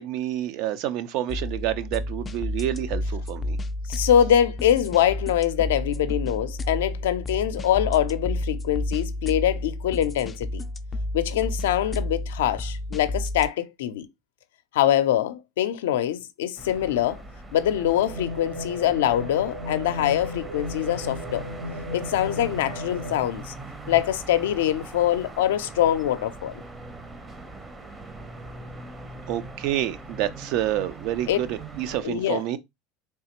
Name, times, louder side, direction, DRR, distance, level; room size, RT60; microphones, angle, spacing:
voice 1, 0.0-3.6 29.3-32.6, right 12 dB, 65° right, 0.5 m, -28 dB
sound 1, 1.3-13.5, left 1 dB, 20° left, 0.3 m, -31 dB
voice 2, 3.9-10.6 11.1-14.1 14.7-17.2 17.5-21.5 21.9-23.5 23.9-26.5 31.3-31.4 32.0-32.4, left 11 dB, 90° left, 0.4 m, -24 dB
sound 2, 16.6-32.0, right 2 dB, 20° right, 0.7 m, -41 dB
sound 3, 17.7-23.2, left 1 dB, 80° right, 1.0 m, -35 dB
3.4 x 3.2 x 2.9 m
supercardioid pair, 115°, 0 cm